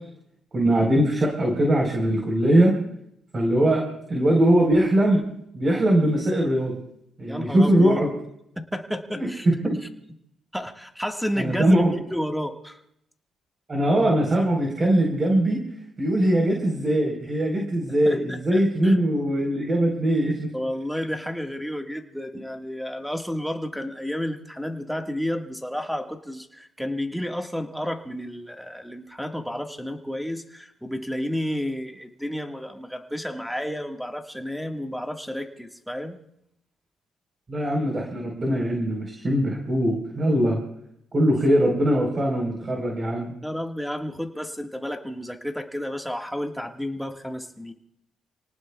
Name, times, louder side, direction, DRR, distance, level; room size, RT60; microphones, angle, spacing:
voice 1, 0.5-2.7 3.3-5.2 5.5-6.7 7.2-8.1 9.2-9.7 11.4-11.9 13.7-15.6 16.0-20.5 37.5-40.6 41.1-43.3, right 1 dB, 35° right, 0 dB, 4.2 m, -21 dB
voice 2, 7.3-8.0 8.5-9.5 10.5-12.8 18.0-19.0 20.5-36.2 43.4-47.7, equal, ahead, 3 dB, 1.7 m, -31 dB
29.5 x 18.5 x 2.4 m, 0.77 s
cardioid pair, 90°, 0 cm